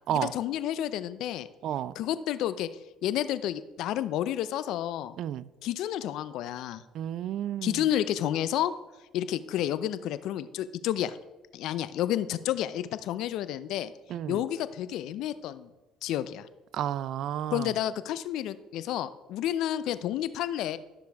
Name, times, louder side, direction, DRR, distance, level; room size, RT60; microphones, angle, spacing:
voice 1, 0.1-1.5 2.0-2.7 3.0-5.1 5.6-6.8 7.6-8.7 9.1-11.2 11.5-13.9 14.3-15.7 16.0-16.5 17.5-20.8, left 11 dB, 70° left, 0.5 m, -30 dB
voice 2, 1.6-2.0 5.2-5.5 6.9-7.8 14.1-14.4 16.7-17.7, right 11 dB, 65° right, 0.4 m, -31 dB
12.5 x 6.8 x 3.5 m
supercardioid pair, 75°, 0 cm